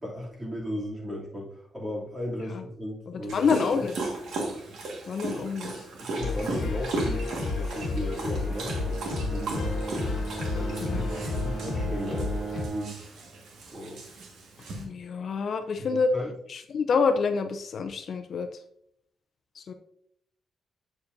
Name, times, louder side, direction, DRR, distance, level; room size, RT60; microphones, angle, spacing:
voice 1, 0.0-3.9 6.0-9.5 10.5-13.0 13.7-14.0 15.8-16.3, left 1 dB, 20° right, -5 dB, 2.8 m, -36 dB
voice 2, 3.3-3.9 5.1-5.7 10.8-11.0 14.7-16.1 16.7-18.5 19.6-19.7, left 5 dB, 55° left, 7 dB, 0.5 m, -27 dB
Dog, 3.3-14.8, right 3 dB, 85° right, 1.7 m, -36 dB
sound 1, 6.2-12.7, left 3 dB, 85° left, 1.2 m, -31 dB
Bowed string instrument, 8.2-13.1, right 4 dB, 35° right, 0.3 m, -38 dB
8.1 x 7.0 x 2.6 m, 0.70 s
cardioid pair, 135°, 0 cm